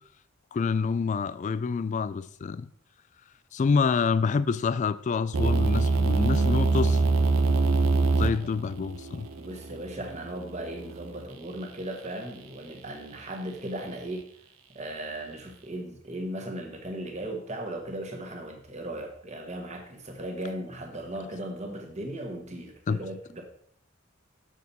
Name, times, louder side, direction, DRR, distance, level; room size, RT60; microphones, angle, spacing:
voice 1, 0.5-2.7 3.5-7.0 8.2-9.3 22.9-23.0, left 5 dB, 35° left, 0.3 m, -27 dB
sound 1, 5.3-11.2, right 3 dB, 90° right, 0.8 m, -25 dB
voice 2, 9.4-14.3 14.7-23.4, right 1 dB, 35° right, 1.4 m, -37 dB
6.9 x 6.3 x 4.2 m
head